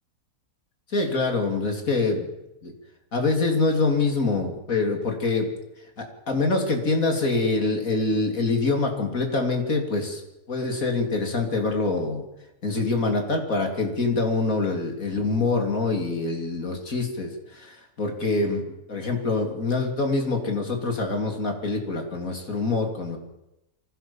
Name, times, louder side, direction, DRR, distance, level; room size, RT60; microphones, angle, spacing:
voice 1, 0.9-2.3 2.6-2.7 3.1-5.5 6.0-10.2 10.5-12.2 12.6-18.6 18.9-23.2, left 3 dB, 60° left, 4 dB, 3.6 m, -25 dB
24.0 x 16.0 x 7.3 m, 0.90 s
omnidirectional pair, 1.6 m